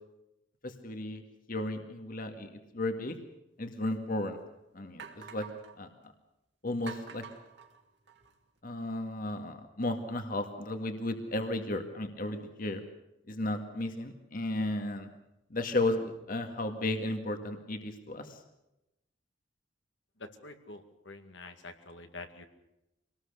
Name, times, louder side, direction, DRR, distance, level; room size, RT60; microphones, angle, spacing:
voice 1, 0.6-1.2 1.5-3.2 3.6-4.4 4.7-5.5 5.8-5.9 6.6-7.2 8.6-12.8 13.3-15.1 15.5-18.4, left 2 dB, 50° left, 6 dB, 2.0 m, -34 dB
sound 1, 3.6-3.7 4.3-4.4 5.0-5.8 6.9-8.4, right 6 dB, 60° right, 3.0 m, -47 dB
voice 2, 20.4-22.4, left 3 dB, 75° left, 6 dB, 2.2 m, -47 dB
25.5 x 19.5 x 6.8 m, 0.90 s
head